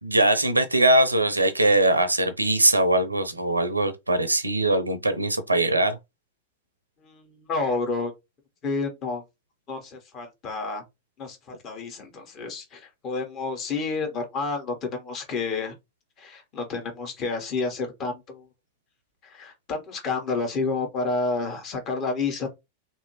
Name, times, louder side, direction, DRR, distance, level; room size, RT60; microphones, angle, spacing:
voice 1, 0.0-6.0, right 1 dB, 85° right, 0.5 m, -21 dB
voice 2, 7.0-8.1 8.6-9.2 9.7-10.8 11.2-15.7 16.2-18.5 19.2-22.5, left 3 dB, 35° left, 1.1 m, -30 dB
2.8 x 2.7 x 2.9 m
figure-of-eight pair, 90°, 0 cm